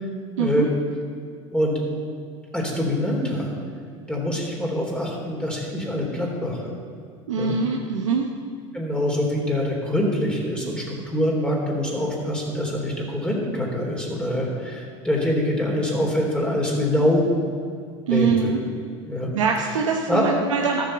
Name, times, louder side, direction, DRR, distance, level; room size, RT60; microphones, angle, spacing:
voice 1, 0.4-0.7 7.3-8.3 18.1-18.6 19.3-20.8, right 6 dB, 85° right, 1 dB, 1.0 m, -23 dB
voice 2, 2.5-3.5 4.1-6.7 7.4-7.5 8.7-17.3 18.1-18.5 19.1-19.3 20.1-20.2, left 1 dB, 5° left, -2 dB, 3.7 m, -24 dB
13.0 x 8.0 x 6.8 m, 2.2 s
hypercardioid pair, 80°, 16 cm